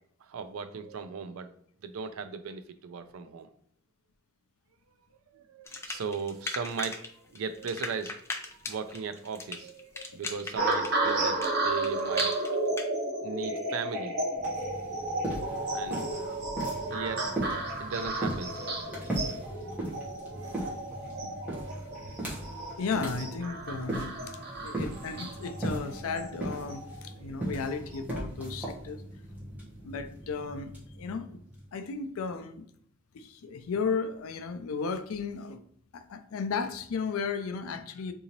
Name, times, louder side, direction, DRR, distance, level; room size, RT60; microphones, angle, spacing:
voice 1, 0.3-1.5 1.8-3.5 5.3-7.0 7.3-8.2 8.6-12.8 13.2-14.3 15.7-16.3 16.9-17.5 17.8-18.6 19.2-20.7 21.2-21.3, right 5 dB, 80° right, 0.4 m, -38 dB
sound 1, 5.7-7.1 7.3-12.9, left 3 dB, 10° left, 0.3 m, -38 dB
sound 2, 10.6-27.0 27.7-28.0, right 2 dB, 50° right, 0.8 m, -33 dB
sound 3, 14.3-31.9, right 1 dB, 5° right, 1.1 m, -38 dB
voice 2, 22.8-29.0 29.8-31.4 31.7-32.7 33.1-35.6 35.9-38.1, left 5 dB, 80° left, 0.4 m, -34 dB
3.7 x 2.7 x 2.9 m
head